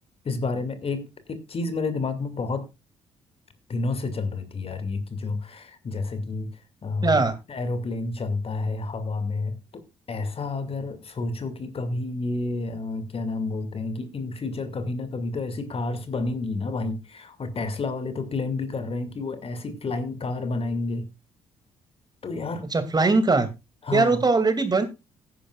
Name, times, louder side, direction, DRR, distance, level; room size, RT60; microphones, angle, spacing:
voice 1, 0.2-2.7 3.7-7.2 7.5-9.8 10.1-21.1 22.2-22.7 23.9-24.2, left 3 dB, 45° left, 2.3 m, -30 dB
voice 2, 7.0-7.4 22.7-23.5 23.9-24.8, right 3 dB, 30° right, 2.4 m, -20 dB
17.0 x 10.0 x 2.4 m
hypercardioid pair, 45°, 14 cm